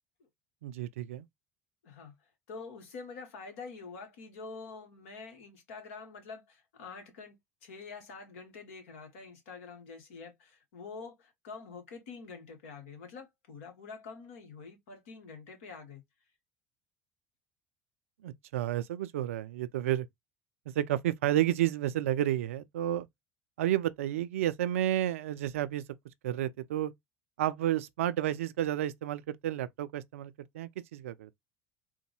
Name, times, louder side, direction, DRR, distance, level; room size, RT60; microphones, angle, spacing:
voice 1, 0.6-1.3 18.2-20.1 20.8-23.1 23.6-25.8 26.2-26.9 27.4-31.4, right 12 dB, 75° right, 0.3 m, -31 dB
voice 2, 1.8-2.1 2.5-16.0, left 4 dB, 70° left, 1.1 m, -46 dB
3.9 x 2.1 x 2.9 m
figure-of-eight pair, 65°, 7 cm